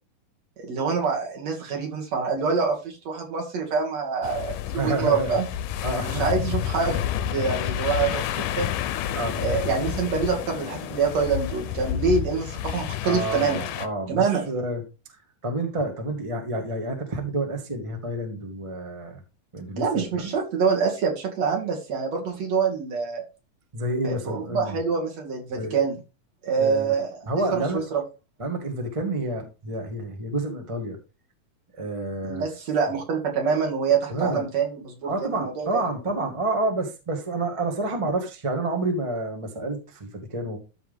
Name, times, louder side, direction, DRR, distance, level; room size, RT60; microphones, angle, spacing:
voice 1, 0.6-2.8 3.0-5.5 6.2-7.0 7.3-8.7 9.4-13.6 14.1-14.4 19.8-23.2 24.0-26.0 26.4-28.0 32.2-35.7, right 5 dB, 55° right, 0 dB, 3.4 m, -25 dB
sound 1, 4.2-13.9, left 11 dB, 75° left, 2.2 m, -30 dB
voice 2, 4.8-5.4 5.8-6.5 9.1-9.4 13.0-14.8 15.4-19.2 19.5-20.3 23.7-24.8 25.5-25.8 26.6-26.9 27.2-27.8 28.4-31.0 31.8-32.4 34.1-34.5 35.0-40.6, right 2 dB, 25° right, 3 dB, 0.6 m, -29 dB
13.5 x 4.8 x 3.6 m, 0.29 s
omnidirectional pair, 4.0 m